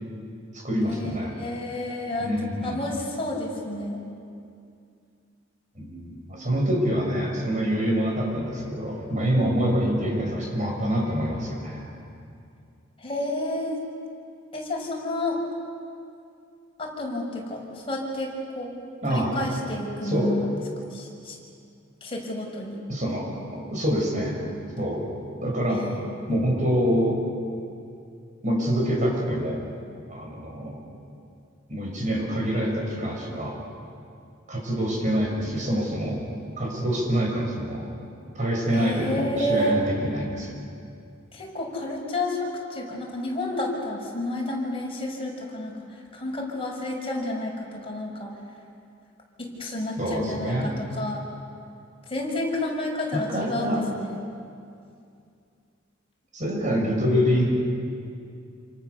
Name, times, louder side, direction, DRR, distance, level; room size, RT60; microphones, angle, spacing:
voice 1, 0.5-1.3 2.2-2.8 5.8-11.8 19.0-19.3 20.0-20.4 22.9-24.4 24.8-25.0 25.4-25.9 26.3-27.2 28.4-29.7 30.1-30.8 31.7-33.6 34.5-36.2 36.6-37.9 38.4-40.5 50.0-50.7 53.1-53.9 56.3-57.5, equal, 40° right, -1 dB, 7.1 m, -26 dB
voice 2, 1.4-4.0 13.0-13.8 14.5-15.4 16.8-18.7 19.1-20.6 20.9-21.4 22.0-22.8 25.7-26.2 38.7-39.8 41.3-45.7 46.1-48.3 49.4-51.2 52.1-54.3, left 1 dB, 30° left, -2 dB, 6.3 m, -30 dB
28.5 x 28.0 x 7.1 m, 2.4 s
head